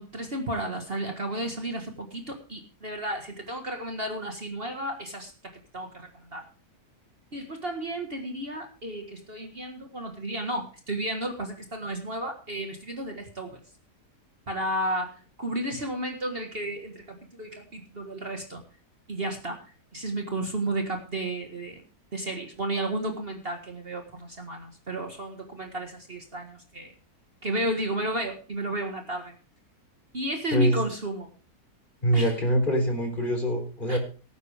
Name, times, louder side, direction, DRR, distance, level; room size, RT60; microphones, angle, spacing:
voice 1, 0.0-6.4 7.3-13.6 14.5-18.6 19.1-19.6 19.9-21.8 22.1-26.9 27.4-29.4 30.1-31.3 32.1-32.3 33.9-34.0, right 1 dB, 40° right, 3 dB, 1.8 m, -33 dB
voice 2, 32.0-34.0, right 1 dB, 30° left, 4 dB, 3.8 m, -24 dB
18.0 x 9.7 x 3.5 m, 0.36 s
omnidirectional pair, 1.7 m